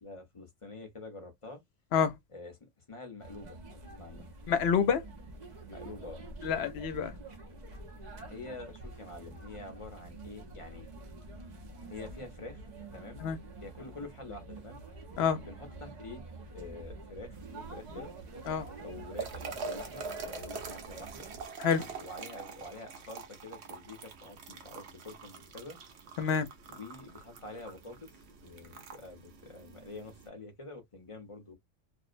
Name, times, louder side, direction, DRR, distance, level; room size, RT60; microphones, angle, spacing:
voice 1, 0.0-1.6 2.3-2.5 2.9-4.3 5.7-6.3 8.3-10.9 11.9-12.6 12.9-13.2 13.6-14.8 15.4-18.1 18.8-21.3 22.0-25.8 26.7-28.1 28.4-31.5, left 3 dB, 30° left, 0.6 m, -46 dB
sound 1, 3.2-21.5, right 2 dB, 45° right, 0.7 m, -47 dB
voice 2, 4.5-5.0 6.4-7.1 13.2-13.4 15.2-15.4 18.5-18.6 21.6-21.9 26.2-26.5, left 7 dB, 65° left, 0.8 m, -28 dB
sound 2, 17.3-30.3, right 5 dB, 65° right, 0.9 m, -45 dB
2.5 x 2.0 x 2.4 m
omnidirectional pair, 1.3 m